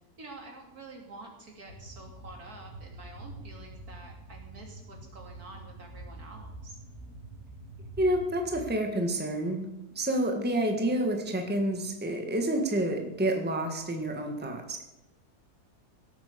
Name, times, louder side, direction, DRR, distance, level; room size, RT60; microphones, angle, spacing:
voice 1, 0.2-6.8, right 2 dB, 65° right, 1 dB, 3.3 m, -48 dB
sound 1, 1.7-8.7, right 2 dB, 45° left, 7.0 m, -46 dB
voice 2, 8.0-9.7 9.9-14.8, right 1 dB, 5° right, 4 dB, 1.5 m, -29 dB
17.0 x 8.6 x 6.8 m, 0.90 s
omnidirectional pair, 1.7 m